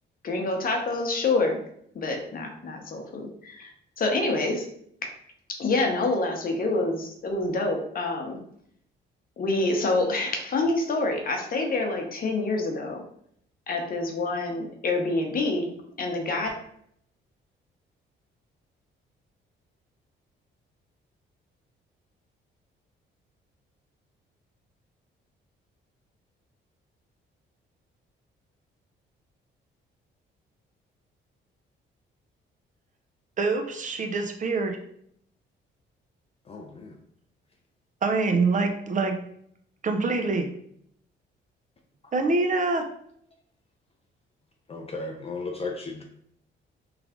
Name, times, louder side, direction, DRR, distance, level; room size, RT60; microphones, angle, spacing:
voice 1, 0.2-1.6 1.9-3.7 4.0-4.6 5.6-8.4 9.4-13.0 13.7-15.7 16.0-16.5, left 2 dB, 45° left, 2 dB, 0.8 m, -27 dB
voice 2, 33.4-34.8 38.0-39.2 39.8-40.5 42.1-42.9, right 3 dB, 40° right, 4 dB, 0.6 m, -25 dB
voice 3, 36.5-37.0 44.7-46.0, left 3 dB, 30° left, 2 dB, 0.5 m, -35 dB
3.3 x 2.4 x 3.6 m, 0.69 s
cardioid pair, 90°, 20 cm